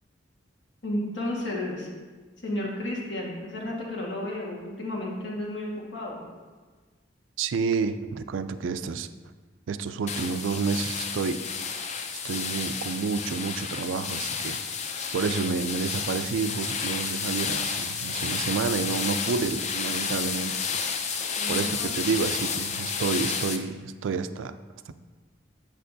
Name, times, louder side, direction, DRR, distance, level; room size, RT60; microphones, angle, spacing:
voice 1, 0.8-1.9 2.4-6.2 21.4-21.9, left 1 dB, 80° left, -3 dB, 1.6 m, -32 dB
voice 2, 7.4-9.1 9.7-11.4 12.2-14.6 15.1-20.6 21.5-24.5 24.9-25.0, right 5 dB, 90° right, 11 dB, 0.4 m, -29 dB
sound 1, 10.1-23.6, left 6 dB, 35° left, 0.4 m, -31 dB
8.0 x 6.5 x 2.7 m, 1.4 s
head